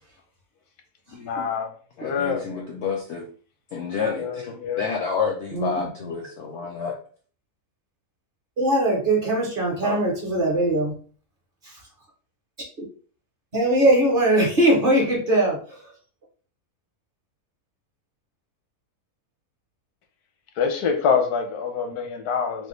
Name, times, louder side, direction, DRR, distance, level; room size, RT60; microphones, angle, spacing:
voice 1, 1.1-1.7 2.0-2.5 4.1-4.8 20.6-22.7, left 6 dB, 85° left, 1.2 m, -25 dB
voice 2, 2.0-3.3 3.7-7.0 9.8-10.0, left 5 dB, 70° left, 0.7 m, -29 dB
voice 3, 5.5-5.8 8.6-10.9 11.6-11.8 13.5-15.9, right 1 dB, 45° right, 0.8 m, -21 dB
3.4 x 2.3 x 3.1 m
omnidirectional pair, 1.6 m